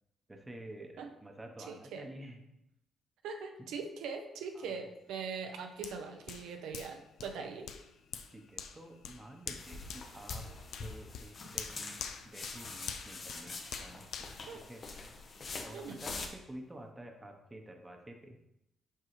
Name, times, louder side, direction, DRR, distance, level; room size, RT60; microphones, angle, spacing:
voice 1, 0.3-2.5 3.6-3.8 4.5-4.8 7.2-7.3 8.3-10.5 10.8-14.3 14.6-14.8 15.6-18.4, right 1 dB, 15° right, 3 dB, 0.9 m, -50 dB
voice 2, 1.7-2.1 3.2-7.7 14.5-14.6 15.7-16.0, right 5 dB, 85° right, 4 dB, 0.7 m, -41 dB
Hands, 5.8-15.4 15.8-16.0, left 7 dB, 75° left, 0.5 m, -46 dB
sound 1, 9.6-16.3, left 3 dB, 45° left, 1.0 m, -45 dB
7.7 x 4.6 x 3.2 m, 0.86 s
cardioid pair, 90°, 0 cm